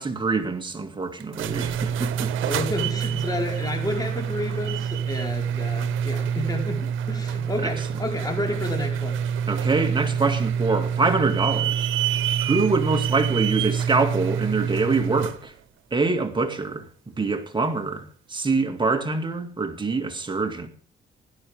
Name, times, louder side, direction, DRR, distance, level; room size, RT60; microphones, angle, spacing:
voice 1, 0.0-2.3 7.6-7.7 9.5-11.8 12.4-15.5 15.9-16.8 17.2-20.7, right 3 dB, 25° right, 2.2 m, -25 dB
sound 1, 1.2-15.4, right 8 dB, 85° right, 1.0 m, -26 dB
voice 2, 2.4-6.8 7.1-9.2, left 2 dB, 20° left, 4.8 m, -30 dB
17.0 x 11.0 x 3.6 m
cardioid pair, 90°, 20 cm